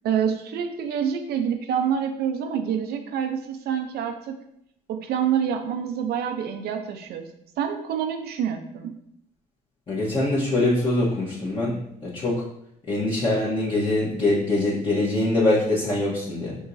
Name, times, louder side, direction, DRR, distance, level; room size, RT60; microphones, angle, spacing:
voice 1, 0.0-4.4 4.9-7.3 7.6-8.9, right 8 dB, 70° right, 6 dB, 0.6 m, -27 dB
voice 2, 9.9-12.4 12.9-16.6, left 2 dB, 30° left, -8 dB, 1.2 m, -23 dB
6.2 x 2.9 x 2.6 m, 0.74 s
cardioid pair, 110°, 17 cm